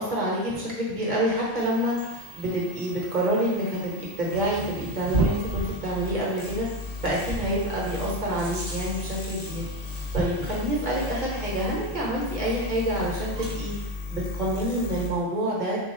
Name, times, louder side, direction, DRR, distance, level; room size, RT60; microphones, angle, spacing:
voice 1, 0.0-1.9 2.3-6.7 7.0-9.6 10.1-13.7 14.1-15.8, right 1 dB, 50° right, -5 dB, 1.2 m, -27 dB
sound 1, 1.2-13.9, right 2 dB, 80° right, 1.1 m, -36 dB
sound 2, 1.6-15.1, left 3 dB, 80° left, 1.0 m, -37 dB
3.9 x 2.3 x 4.2 m, 1.0 s
omnidirectional pair, 1.0 m